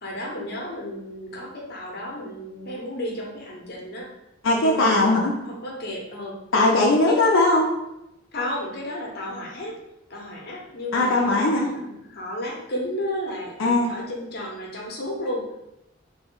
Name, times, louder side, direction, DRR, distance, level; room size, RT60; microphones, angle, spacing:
voice 1, 0.0-4.1 4.6-6.4 7.1-7.2 8.3-9.7 10.1-15.5, left 1 dB, 55° left, -1 dB, 0.9 m, -33 dB
voice 2, 4.4-5.3 6.5-7.7 10.9-11.7 13.6-14.0, left 2 dB, 85° left, -2 dB, 0.5 m, -19 dB
3.1 x 2.7 x 3.8 m, 0.88 s
head